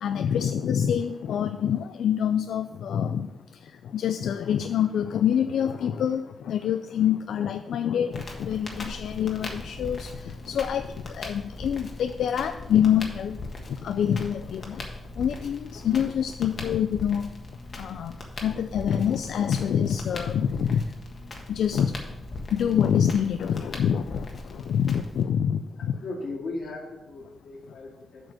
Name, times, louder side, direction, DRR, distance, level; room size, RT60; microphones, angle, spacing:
voice 1, 0.0-3.3 3.9-13.4 13.8-14.8 15.2-17.3 17.8-18.1 18.4-20.8 21.5-21.9 22.5-24.3 24.5-25.9, left 9 dB, 90° left, 9 dB, 0.3 m, -26 dB
Crackle, 8.1-25.2, left 2 dB, 45° left, 1.4 m, -40 dB
voice 2, 25.8-28.3, left 2 dB, 65° left, -1 dB, 2.2 m, -37 dB
7.5 x 5.0 x 6.4 m, 1.1 s
wide cardioid pair, 130°, 0 cm